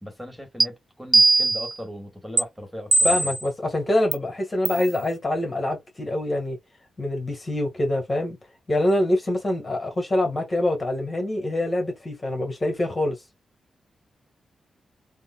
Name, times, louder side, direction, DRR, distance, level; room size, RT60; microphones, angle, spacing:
voice 1, 0.0-3.2, equal, 5° right, 1.8 m, -38 dB
sound 1, 0.6-0.7 1.1-1.7 2.4-2.5 2.9-3.4 4.1-4.2 4.7-4.9, right 3 dB, 30° right, 0.4 m, -19 dB
voice 2, 3.0-6.6 7.0-8.4 8.7-13.1, left 1 dB, 35° left, 1.8 m, -25 dB
3.7 x 2.3 x 2.4 m
supercardioid pair, 50°, 0 cm